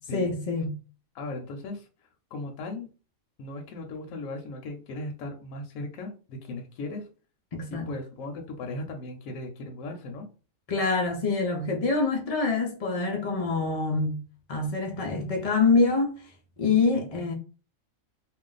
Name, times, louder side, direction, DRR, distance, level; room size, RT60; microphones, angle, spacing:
voice 1, 0.1-0.7 7.5-7.9 10.7-14.2 14.5-16.1 16.6-17.3, left 4 dB, 60° left, 0.3 m, -25 dB
voice 2, 1.1-1.9 2.3-2.9 3.4-7.1 7.7-10.3 16.9-17.1, left 2 dB, 80° left, 1.0 m, -37 dB
2.5 x 2.2 x 3.8 m
omnidirectional pair, 1.4 m